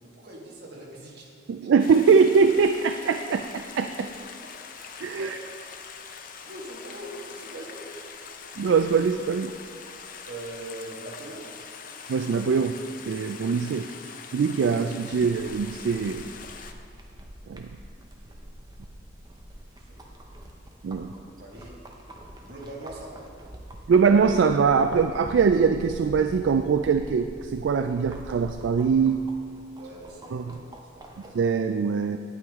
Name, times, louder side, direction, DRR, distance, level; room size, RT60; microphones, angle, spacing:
voice 1, 0.0-1.3 1.6-1.8 5.2-5.9 6.1-7.9 10.3-11.5 13.7-13.8 18.3-18.4 19.7-20.0 21.2-21.8 22.4-23.3 29.7-30.6 30.9-31.1, right 1 dB, 60° right, -3 dB, 1.8 m, -42 dB
voice 2, 1.5-3.9 5.0-5.4 8.6-9.5 12.1-12.8 13.1-13.8 14.3-16.2 17.5-17.7 20.8-21.1 23.9-29.2 30.3-30.6 31.3-32.2, right 5 dB, 75° right, 8 dB, 0.3 m, -22 dB
Stream, 1.8-16.7, left 6 dB, 45° left, 0.6 m, -43 dB
sound 1, 15.1-31.5, right 1 dB, 20° right, 0.8 m, -45 dB
9.3 x 8.9 x 3.6 m, 2.3 s
head